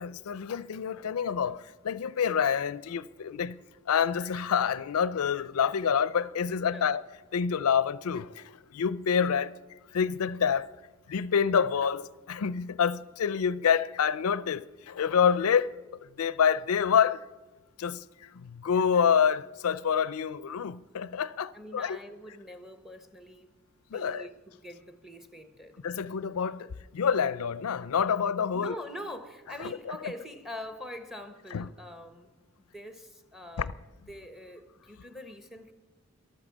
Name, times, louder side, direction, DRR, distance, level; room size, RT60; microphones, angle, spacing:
voice 1, 0.0-3.6 3.9-7.0 7.3-9.6 9.9-10.7 11.1-15.7 16.2-17.3 17.8-22.0 23.9-24.3 25.8-28.8 29.6-30.1 31.5-31.7 33.6-33.7, left 7 dB, 90° left, 0.4 m, -27 dB
voice 2, 21.5-23.5 23.9-25.8 28.5-32.3 32.7-33.7 34.1-35.7, left 1 dB, ahead, 0.9 m, -44 dB
14.0 x 11.5 x 7.3 m
head